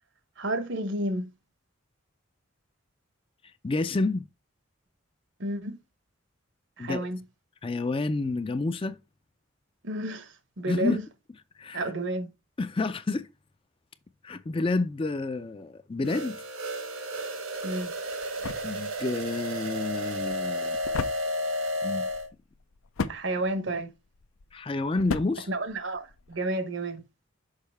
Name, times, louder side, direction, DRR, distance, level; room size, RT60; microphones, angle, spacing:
voice 1, 0.4-1.3 5.4-5.8 6.8-7.2 9.8-11.0 11.7-12.3 17.6-17.9 23.1-23.9 25.5-27.0, right 1 dB, 60° right, 0.9 m, -31 dB
voice 2, 3.6-4.2 6.8-7.1 7.6-9.0 10.7-11.0 11.6-11.8 12.6-13.3 14.2-16.4 18.6-20.8 21.8-22.1 24.5-25.5, left 3 dB, 25° left, 0.4 m, -29 dB
sound 1, 16.0-22.3, equal, 80° right, 1.5 m, -32 dB
sound 2, 17.6-26.4, left 4 dB, 80° left, 0.6 m, -38 dB
6.6 x 5.3 x 3.4 m
head